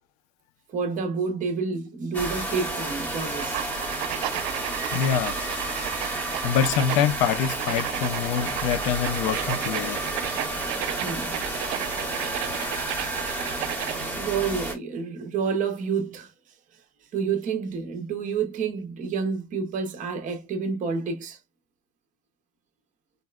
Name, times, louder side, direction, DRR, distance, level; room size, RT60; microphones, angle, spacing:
voice 1, 0.7-3.6 11.0-11.4 13.9-16.3 17.1-21.4, right 5 dB, 25° right, 0.6 m, -29 dB
sound 1, 2.1-14.7, right 2 dB, 5° left, 0.9 m, -31 dB
sound 2, 3.4-14.1, right 14 dB, 90° right, 0.5 m, -33 dB
voice 2, 4.9-5.3 6.0-10.5 11.7-12.7, left 8 dB, 85° left, 0.5 m, -27 dB
3.8 x 2.1 x 2.2 m
cardioid pair, 170°, 31 cm